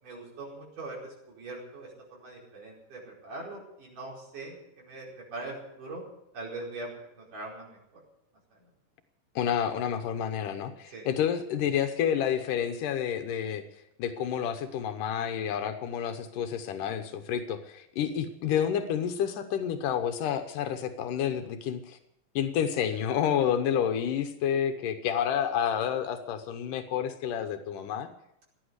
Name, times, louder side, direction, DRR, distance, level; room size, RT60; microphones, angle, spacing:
voice 1, 0.0-6.0 6.3-6.9 7.2-7.8 10.9-11.1, right 2 dB, 75° right, -3 dB, 6.5 m, -41 dB
voice 2, 9.4-13.6 14.0-22.0 22.4-28.1, left 8 dB, 85° left, 7 dB, 2.6 m, -29 dB
16.5 x 10.5 x 8.1 m, 0.79 s
omnidirectional pair, 3.7 m